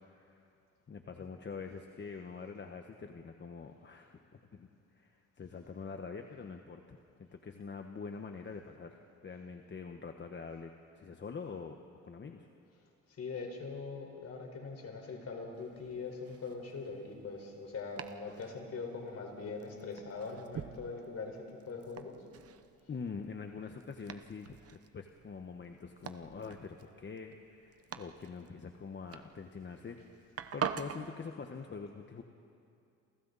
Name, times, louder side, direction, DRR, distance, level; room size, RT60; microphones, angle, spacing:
voice 1, 0.1-0.5 0.9-4.7 4.9-9.0 9.2-11.8 12.0-12.5 22.9-30.0 30.5-32.2, left 5 dB, 35° left, 4 dB, 1.3 m, -45 dB
voice 2, 13.1-22.2, left 4 dB, 55° left, 2 dB, 4.8 m, -42 dB
Domestic sounds home sounds, 15.5-31.1, right 8 dB, 50° right, 1.0 m, -46 dB
29.0 x 28.0 x 4.2 m, 2.5 s
cardioid pair, 90°, 30 cm